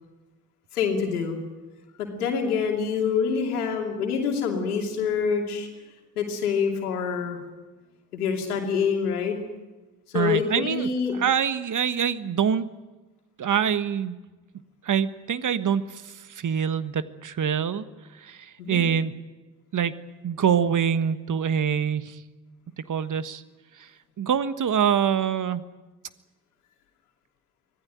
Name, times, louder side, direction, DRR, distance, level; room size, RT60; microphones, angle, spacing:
voice 1, 0.7-1.4 2.0-5.7 6.2-7.4 8.1-9.4 10.1-11.2 18.6-18.8, left 6 dB, 90° left, 2 dB, 2.8 m, -26 dB
voice 2, 10.1-10.9 11.1-12.6 13.4-14.2 14.8-17.8 18.2-19.1 19.7-19.9 20.2-22.2 22.9-23.4 23.8-23.9 24.2-25.6, right 8 dB, 45° right, 13 dB, 1.4 m, -25 dB
25.0 x 17.0 x 9.2 m, 1.2 s
hypercardioid pair, 45°, 44 cm